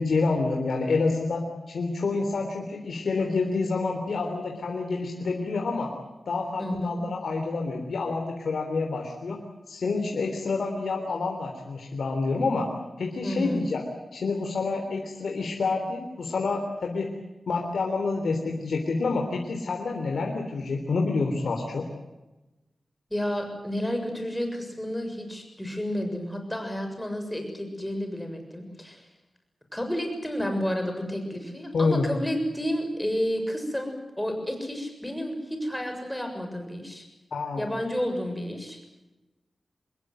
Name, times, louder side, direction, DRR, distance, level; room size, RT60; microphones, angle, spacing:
voice 1, 0.0-5.9 6.3-9.4 9.7-12.7 13.0-13.8 14.1-17.1 17.5-21.9 31.7-32.1 37.3-37.7, left 3 dB, 85° left, 2 dB, 3.6 m, -28 dB
voice 2, 6.6-7.1 13.2-13.6 23.1-29.1 29.7-37.0 37.6-38.8, equal, 5° left, 4 dB, 7.0 m, -31 dB
26.5 x 21.0 x 7.8 m, 1.1 s
wide cardioid pair, 90°, 0 cm